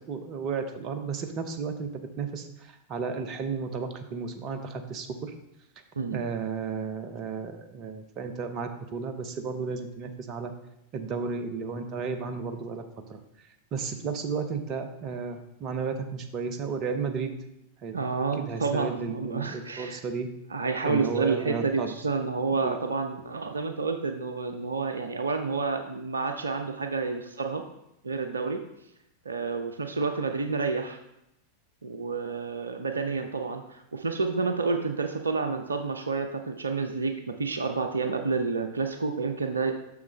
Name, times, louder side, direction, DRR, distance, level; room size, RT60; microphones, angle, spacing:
voice 1, 0.1-5.3 6.1-10.5 10.9-12.8 13.1-13.2 13.7-17.3 17.8-20.3 20.8-21.9 22.5-22.8, right 5 dB, 35° right, 7 dB, 0.7 m, -33 dB
voice 2, 17.9-20.0 20.5-27.6 28.0-28.6 29.3-31.0 31.8-39.7, right 4 dB, 75° right, 6 dB, 0.5 m, -29 dB
6.9 x 6.3 x 3.2 m, 0.84 s
figure-of-eight pair, 90°, 0 cm